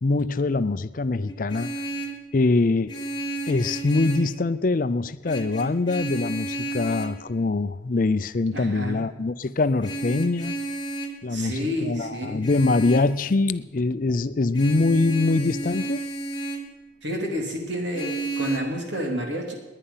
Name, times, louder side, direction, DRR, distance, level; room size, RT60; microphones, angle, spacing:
voice 1, 0.0-1.7 2.3-2.9 3.5-10.6 11.2-16.0, left 3 dB, 45° left, 14 dB, 0.5 m, -23 dB
Vehicle horn car horn honking, 1.3-2.2 2.9-4.4 5.3-7.2 9.8-11.2 12.4-13.1 14.5-16.7 17.9-18.6, right 2 dB, 25° left, 1.5 m, -32 dB
voice 2, 8.5-9.0 11.3-12.4 17.0-19.5, equal, 70° right, 2 dB, 3.1 m, -29 dB
20.5 x 10.0 x 5.7 m, 1.1 s
head